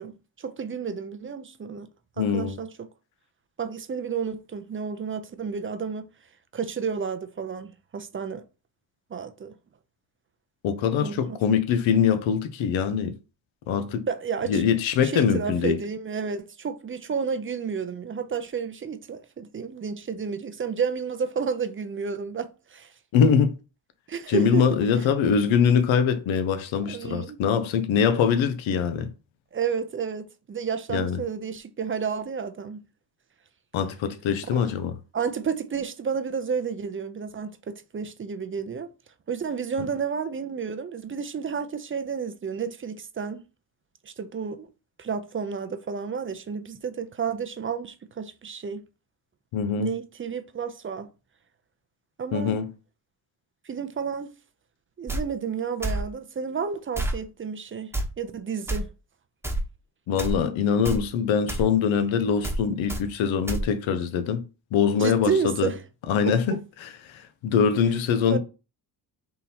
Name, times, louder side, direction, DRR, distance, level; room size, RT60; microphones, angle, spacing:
voice 1, 0.0-1.9 2.2-2.9 3.6-6.1 6.5-8.4 9.1-9.5 11.0-11.4 14.1-14.6 15.0-22.9 24.1-24.6 26.9-27.4 29.5-32.8 34.5-34.7 35.1-38.9 39.3-43.4 44.0-44.7 45.0-48.8 49.8-51.1 52.2-52.6 53.7-54.3 55.0-58.9 65.0-65.8 66.3-66.6 68.2-68.4, right 6 dB, 25° right, 0.5 m, -31 dB
voice 2, 2.2-2.6 10.6-13.1 13.7-14.1 14.5-15.8 23.1-23.5 24.3-29.1 30.9-31.2 33.7-34.9 49.5-50.0 52.3-52.7 60.1-64.4 64.7-65.7 66.1-66.5 66.8-68.4, left 7 dB, 80° left, 0.8 m, -23 dB
sound 1, 55.1-55.2 55.8-56.0 56.9-57.2 57.9-58.1 58.7-58.8 59.4-59.6 60.2-60.4 60.8-61.0 61.5-61.7 62.4-62.6 62.9-63.0 63.5-63.6, right 1 dB, 5° right, 1.0 m, -27 dB
3.7 x 2.7 x 4.2 m
cardioid pair, 80°, 46 cm